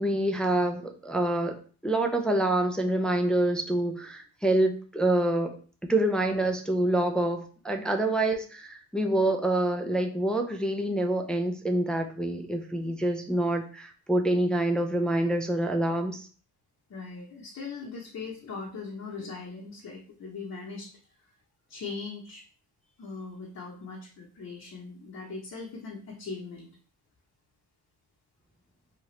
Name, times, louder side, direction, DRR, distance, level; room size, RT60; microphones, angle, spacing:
voice 1, 0.0-16.3, right 1 dB, ahead, 3 dB, 0.3 m, -27 dB
voice 2, 16.9-20.9 21.7-22.4 23.0-26.7, left 4 dB, 45° left, -4 dB, 0.9 m, -40 dB
2.9 x 2.4 x 3.1 m, 0.40 s
cardioid pair, 80°, 39 cm